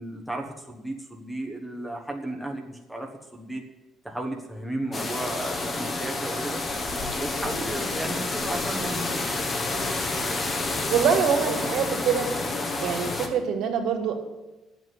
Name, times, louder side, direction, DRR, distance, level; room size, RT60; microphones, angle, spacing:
voice 1, 0.0-3.6 4.0-6.6 7.1-9.1, right 1 dB, ahead, 0 dB, 1.3 m, -34 dB
sound 1, 4.9-13.3, left 2 dB, 25° left, 1.4 m, -29 dB
voice 2, 10.9-12.3 12.8-14.1, right 7 dB, 70° right, 4 dB, 2.3 m, -24 dB
10.5 x 8.0 x 9.6 m, 1.1 s
cardioid pair, 150°, 0 cm